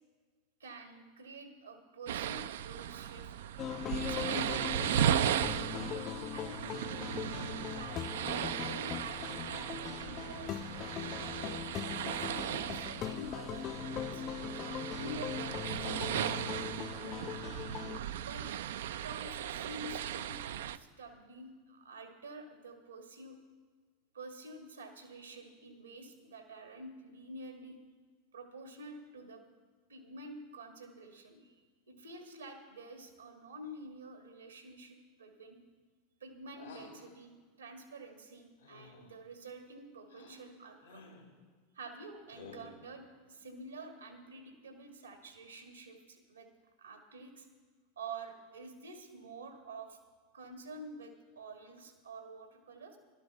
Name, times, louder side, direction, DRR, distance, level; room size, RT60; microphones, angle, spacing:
voice 1, 0.6-3.3 3.9-5.8 6.3-7.2 7.7-8.2 8.6-10.6 11.0-11.6 12.0-14.2 14.6-17.4 18.2-18.5 18.8-23.4 24.1-27.8 28.3-29.4 29.9-31.6 31.9-35.6 36.2-41.1 41.7-46.5 46.8-47.5 48.0-50.0 50.3-53.0, right 2 dB, 80° right, 5 dB, 1.5 m, -49 dB
sound 1, 2.1-20.8, right 10 dB, 65° right, 0.3 m, -36 dB
sound 2, 3.6-18.0, left 10 dB, 35° left, 0.3 m, -40 dB
sound 3, 36.6-37.1 38.6-39.1 40.1-40.5 40.8-41.3 42.3-42.9, left 3 dB, 75° left, 2.0 m, -52 dB
12.5 x 12.0 x 4.5 m, 1.5 s
figure-of-eight pair, 85°, 0 cm